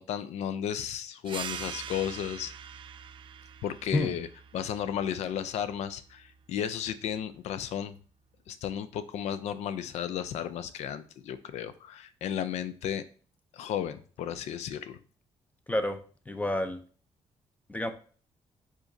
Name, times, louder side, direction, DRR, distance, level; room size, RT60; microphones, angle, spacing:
voice 1, 0.0-2.5 3.6-4.3 4.5-7.9 8.5-13.0 13.5-15.0, left 9 dB, 80° left, 13 dB, 0.4 m, -34 dB
sound 1, 1.3-6.4, right 8 dB, 50° right, 0.4 m, -44 dB
voice 2, 15.7-16.0 16.3-16.8 17.7-17.9, left 1 dB, 15° left, 9 dB, 0.5 m, -29 dB
4.9 x 3.9 x 2.6 m, 0.42 s
cardioid pair, 100°, 11 cm